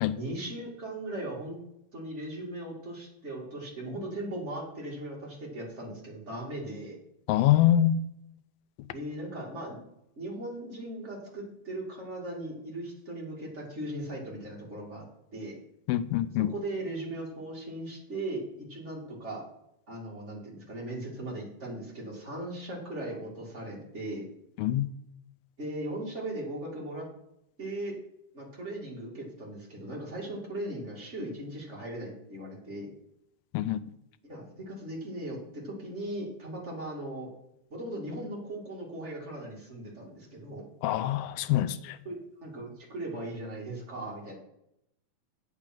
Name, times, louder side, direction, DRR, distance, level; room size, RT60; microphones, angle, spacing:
voice 1, 0.1-1.6 1.9-7.0 8.9-9.8 10.2-15.0 15.3-15.5 16.4-19.5 19.9-24.3 25.6-27.1 27.6-27.9 28.3-32.9 34.3-37.3 37.7-40.7 42.0-44.3, right 1 dB, 25° right, -4 dB, 1.9 m, -38 dB
voice 2, 7.3-8.0 15.9-16.5 24.6-24.9 33.5-33.8 40.8-42.0, left 12 dB, 85° left, 13 dB, 2.4 m, -25 dB
8.7 x 6.1 x 6.0 m, 0.80 s
omnidirectional pair, 4.2 m